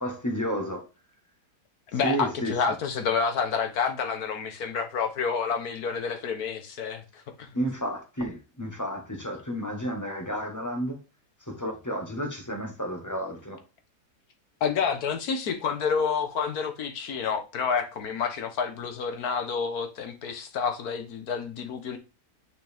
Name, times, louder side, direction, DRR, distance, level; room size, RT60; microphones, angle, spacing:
voice 1, 0.0-0.8 2.0-2.6 7.5-11.0 11.5-13.6, equal, 10° left, 1.4 m, -31 dB
voice 2, 1.9-7.5 14.6-22.0, left 6 dB, 70° left, 1.6 m, -29 dB
8.9 x 5.1 x 3.5 m
omnidirectional pair, 1.7 m